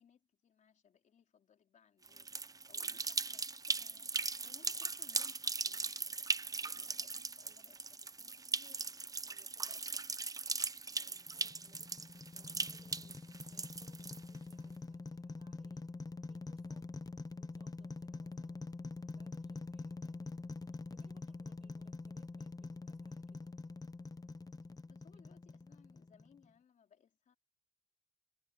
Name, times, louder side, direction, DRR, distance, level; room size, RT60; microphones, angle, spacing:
voice 1, 0.0-8.9 9.6-10.0 10.4-11.3 16.7-16.9 24.9-27.3, left 7 dB, 85° left, 4.0 m, -67 dB
sound 1, 2.1-14.5, right 4 dB, 30° right, 0.6 m, -39 dB
voice 2, 6.6-6.9 7.4-7.6 9.2-9.8 11.3-16.0 16.3-16.9 17.4-20.4 20.9-23.6 25.1-25.2, right 5 dB, 50° right, 7.4 m, -71 dB
sound 2, 11.3-26.5, left 3 dB, 30° left, 1.0 m, -46 dB
wide cardioid pair, 100°, 13 cm